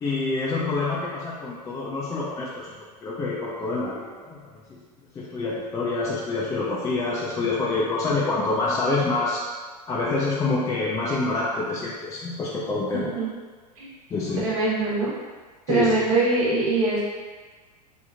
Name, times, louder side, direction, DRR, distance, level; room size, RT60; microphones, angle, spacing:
voice 1, 0.0-4.8 5.1-9.4 9.9-13.1 14.1-14.5 15.7-16.1, left 3 dB, 15° left, -6 dB, 0.4 m, -27 dB
voice 2, 14.4-15.1 15.7-17.0, right 3 dB, 60° right, -7 dB, 1.2 m, -22 dB
3.4 x 2.8 x 2.4 m, 1.4 s
figure-of-eight pair, 90°, 21 cm